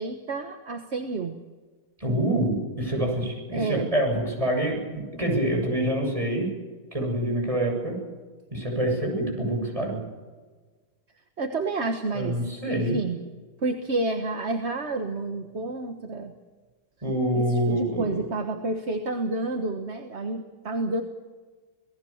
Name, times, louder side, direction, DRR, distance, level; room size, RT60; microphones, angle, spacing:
voice 1, 0.0-1.4 3.5-3.9 11.4-12.4 12.6-13.2 13.6-16.3 17.3-21.0, right 3 dB, 35° right, 5 dB, 1.4 m, -29 dB
voice 2, 2.0-6.5 6.9-8.0 8.5-10.0 12.1-13.0 17.0-18.2, right 1 dB, 15° right, 0 dB, 7.5 m, -26 dB
28.0 x 19.0 x 7.3 m, 1.4 s
omnidirectional pair, 2.3 m